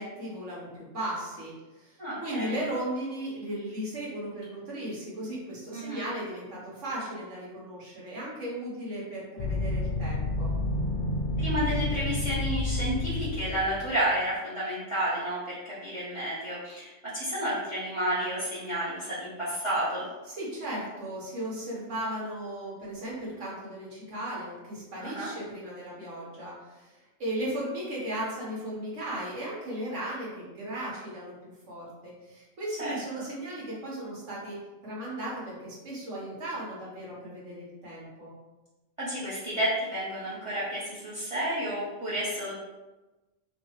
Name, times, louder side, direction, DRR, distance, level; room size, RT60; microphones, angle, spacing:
voice 1, 0.0-10.5 20.3-38.3, right 1 dB, 70° right, -5 dB, 1.7 m, -36 dB
voice 2, 2.0-2.6 5.7-6.0 11.4-20.1 25.0-25.3 32.8-33.3 39.0-42.5, right 1 dB, 25° right, -9 dB, 1.0 m, -31 dB
sound 1, 9.4-13.9, left 2 dB, 70° left, 1.0 m, -30 dB
5.3 x 2.4 x 3.1 m, 1.1 s
omnidirectional pair, 1.3 m